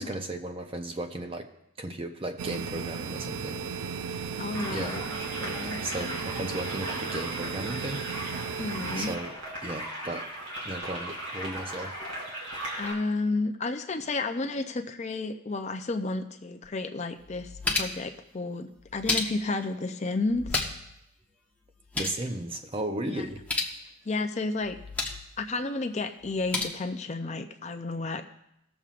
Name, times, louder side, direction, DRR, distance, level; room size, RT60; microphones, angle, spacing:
voice 1, 0.0-1.5 1.8-4.0 4.7-5.0 5.8-8.0 8.9-9.3 9.6-10.3 10.6-12.0 22.0-23.5, right 1 dB, 25° right, 6 dB, 0.6 m, -35 dB
sound 1, 2.4-9.2, right 6 dB, 85° right, 0.5 m, -35 dB
voice 2, 4.4-5.0 5.4-5.8 8.6-9.1 12.8-20.6 23.0-23.2 24.1-24.8 25.4-28.2, left 3 dB, 30° left, 6 dB, 0.5 m, -32 dB
sound 2, 4.5-12.9, right 1 dB, 55° right, 3.3 m, -37 dB
sound 3, 16.6-16.7 17.2-18.1 18.8-19.6 20.3-21.0 21.2-21.3 21.7-22.2 23.3-23.8 24.6-25.3 26.2-26.6, left 3 dB, 5° left, 0.9 m, -32 dB
20.5 x 7.1 x 2.5 m, 0.82 s
head